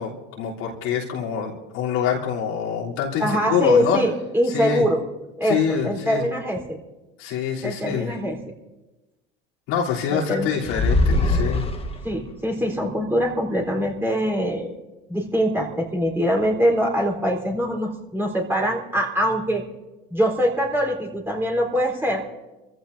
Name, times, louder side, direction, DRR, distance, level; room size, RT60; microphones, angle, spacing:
voice 1, 0.0-4.0 4.5-4.8 5.4-6.3 7.2-8.1 9.7-11.7, left 7 dB, 65° left, -4 dB, 3.4 m, -25 dB
voice 2, 3.2-5.0 5.4-6.8 7.6-8.4 10.1-10.5 12.0-14.8 15.1-19.6 20.1-22.2, equal, 10° right, -1 dB, 4.0 m, -23 dB
sound 1, 10.7-12.3, left 2 dB, 20° left, 1.4 m, -21 dB
27.0 x 15.0 x 2.7 m, 1.1 s
supercardioid pair, 95°, 29 cm